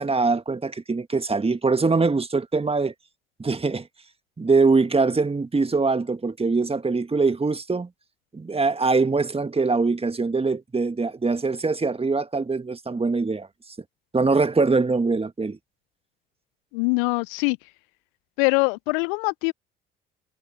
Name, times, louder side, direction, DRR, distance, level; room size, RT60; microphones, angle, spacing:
voice 1, 0.0-2.9 3.4-3.9 4.4-7.9 8.3-13.5 14.1-15.6, right 4 dB, 20° right, 1.7 m, -23 dB
voice 2, 16.7-17.6 18.4-19.5, left 32 dB, 70° left, 0.5 m, -23 dB
figure-of-eight pair, 50°, 29 cm